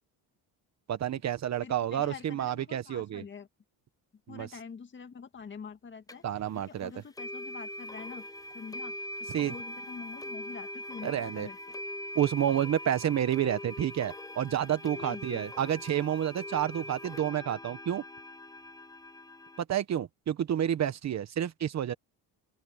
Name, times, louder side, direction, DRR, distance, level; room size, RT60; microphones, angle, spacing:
voice 1, 0.9-3.2 4.3-4.5 6.2-6.9 9.3-9.5 11.0-11.5 12.1-18.0 19.7-21.9, right 10 dB, 45° right, 1.1 m, -29 dB
voice 2, 1.6-3.5 4.3-6.2 6.5-8.3 8.5-11.6 14.9-15.5, left 6 dB, 30° left, 1.9 m, -45 dB
sound 1, 6.1-6.2 7.2-19.6, left 1 dB, 10° left, 0.7 m, -42 dB
open air
cardioid pair, 135°, 38 cm